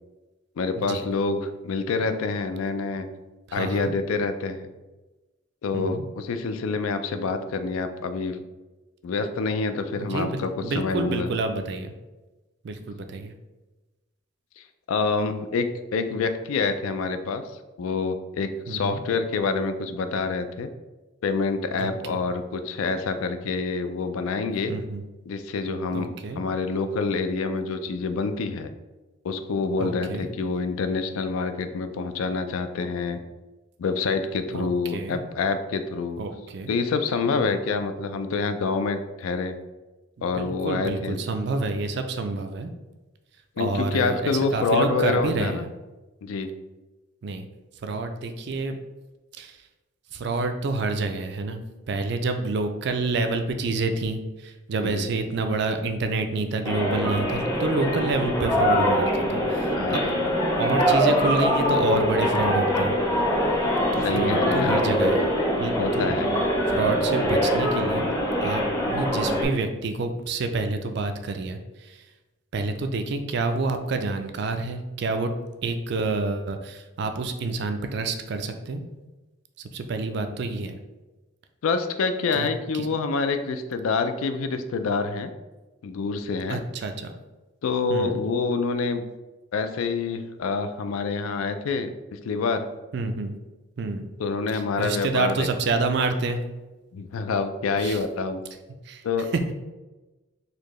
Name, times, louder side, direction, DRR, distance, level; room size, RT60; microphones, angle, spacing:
voice 1, 0.6-3.1 3.5-4.7 5.6-8.4 9.0-11.3 14.9-17.4 17.8-20.7 21.2-24.7 25.3-26.1 26.4-28.7 29.2-33.2 33.8-36.2 36.7-39.6 40.2-41.2 43.6-45.7 46.2-46.5 54.8-55.1 59.8-60.1 64.0-64.8 65.8-66.3 81.6-85.3 85.8-86.6 87.6-89.0 89.5-92.6 94.2-95.5 96.9-98.4 99.0-99.3, left 4 dB, 80° left, 9 dB, 0.4 m, -27 dB
voice 2, 3.5-4.0 5.7-6.1 10.0-11.9 12.6-13.3 18.7-19.0 21.8-22.2 24.7-25.0 25.9-26.4 29.8-30.3 34.5-35.2 36.2-36.7 40.2-42.7 43.6-45.7 47.2-47.5 47.8-48.7 49.4-49.6 50.1-51.6 51.9-60.0 60.6-62.9 63.9-65.3 65.6-66.1 66.7-68.1 68.4-72.1 72.5-75.3 75.6-78.8 79.6-80.8 82.3-82.5 82.7-82.9 86.5-87.1 87.9-88.2 92.9-93.3 93.8-94.1 94.5-96.4 97.8-98.0 98.8-99.0 99.3-99.6, right 3 dB, 55° right, 7 dB, 0.4 m, -28 dB
sound 1, 56.7-69.5, equal, 15° left, 0.5 m, -23 dB
4.2 x 2.7 x 3.0 m, 1.1 s
head